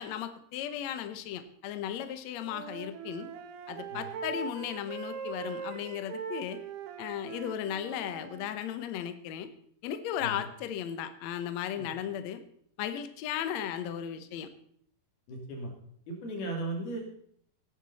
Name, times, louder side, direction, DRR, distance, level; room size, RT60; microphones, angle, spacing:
voice 1, 0.0-3.3 3.7-6.6 7.0-9.5 9.8-12.4 12.8-14.5, left 10 dB, 85° left, 10 dB, 1.5 m, -36 dB
Wind instrument woodwind instrument, 2.1-8.6, right 6 dB, 80° right, 2.9 m, -41 dB
voice 2, 15.3-15.7 16.1-17.0, right 2 dB, 70° left, 1 dB, 4.8 m, -36 dB
17.5 x 9.8 x 4.2 m, 0.65 s
omnidirectional pair, 4.7 m